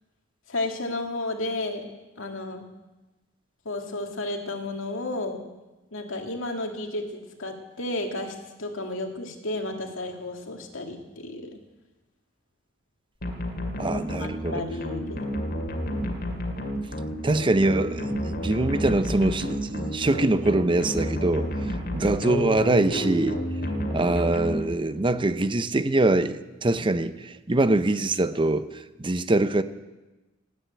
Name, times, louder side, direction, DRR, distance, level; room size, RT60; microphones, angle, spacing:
voice 1, 0.5-1.9 2.2-2.6 3.7-5.4 5.9-11.6 13.9-15.3, left 2 dB, 80° left, 2.2 m, -32 dB
sound 1, 13.2-25.1, equal, 50° left, 2.4 m, -31 dB
voice 2, 13.8-14.6 17.2-21.5 21.9-23.4 23.9-28.7 29.0-29.6, right 2 dB, 25° right, 0.6 m, -23 dB
17.5 x 9.0 x 8.8 m
head